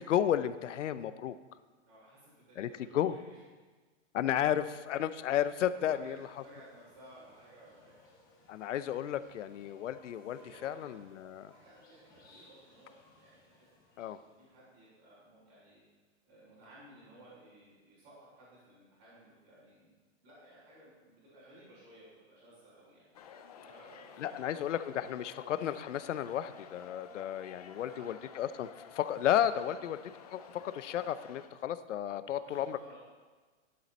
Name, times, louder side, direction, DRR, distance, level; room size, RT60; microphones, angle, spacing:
voice 1, 0.0-1.4 2.6-3.1 4.1-6.3 8.5-11.5 14.0-14.2 24.2-30.0 30.3-33.0, left 10 dB, 75° left, 14 dB, 0.7 m, -33 dB
voice 2, 1.9-3.4 5.7-8.0 10.3-13.5 13.9-15.8 16.2-19.9 20.2-23.1 23.6-24.8 27.0-27.3 27.7-28.1 29.6-29.8 32.3-33.0, right 1 dB, 25° right, -14 dB, 3.6 m, -57 dB
sound 1, 5.7-15.0, left 2 dB, 10° left, 1.1 m, -63 dB
sound 2, 23.1-31.5, left 7 dB, 35° left, 0.5 m, -52 dB
11.0 x 7.6 x 4.2 m, 1.3 s
hypercardioid pair, 170°, 37 cm